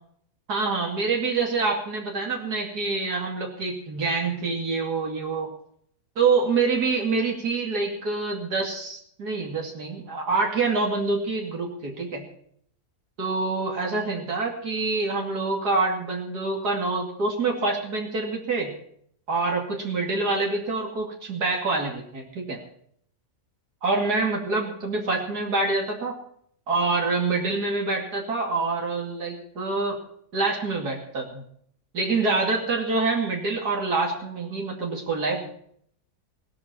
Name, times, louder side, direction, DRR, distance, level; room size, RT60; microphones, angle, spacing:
voice 1, 0.5-5.5 6.2-12.2 13.2-18.8 19.3-22.6 23.8-26.2 26.7-30.0 30.3-31.4 31.9-35.5, right 3 dB, 80° right, 0 dB, 3.1 m, -26 dB
18.0 x 12.5 x 4.4 m, 0.65 s
omnidirectional pair, 1.7 m